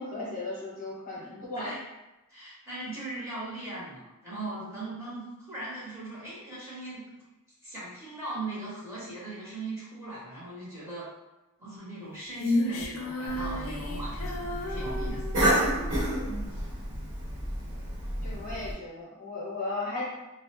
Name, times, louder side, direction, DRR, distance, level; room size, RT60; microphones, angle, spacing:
voice 1, 0.0-1.7 16.2-16.6 18.2-20.1, left 2 dB, 35° left, -7 dB, 0.7 m, -36 dB
voice 2, 2.3-7.1 7.6-11.1 11.6-15.2, right 2 dB, 10° right, -9 dB, 0.8 m, -39 dB
Female singing, 12.4-15.9, left 1 dB, 80° left, 0.4 m, -33 dB
Cough, 13.3-18.7, right 1 dB, 75° right, 1.0 m, -30 dB
2.4 x 2.0 x 2.8 m, 1.0 s
head